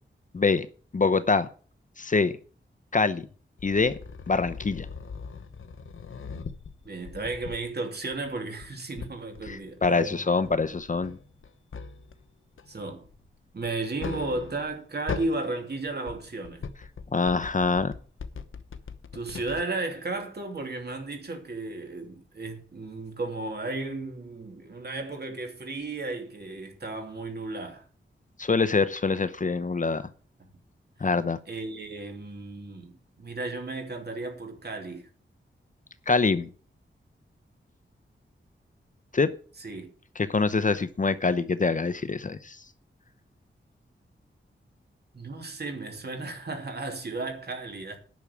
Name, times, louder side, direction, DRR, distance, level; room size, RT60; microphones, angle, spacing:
voice 1, 0.3-0.7 0.9-1.5 2.0-2.3 2.9-3.3 3.6-3.9 4.3-4.9 9.5-11.2 17.1-17.9 28.4-30.1 31.0-31.4 36.1-36.5 39.1-39.3 40.2-42.6, left 4 dB, 40° left, 0.8 m, -25 dB
sound 1, 3.6-7.7 8.1-10.0 10.4-12.3 12.6-14.8 15.1-15.4 15.9-19.6, left 5 dB, 80° left, 1.0 m, -40 dB
voice 2, 6.8-10.2 12.7-13.0 13.5-16.6 19.1-27.8 31.5-35.1 39.6-39.9 45.1-48.0, right 2 dB, 55° right, 3.0 m, -34 dB
10.5 x 6.3 x 8.4 m
wide cardioid pair, 110°, 20 cm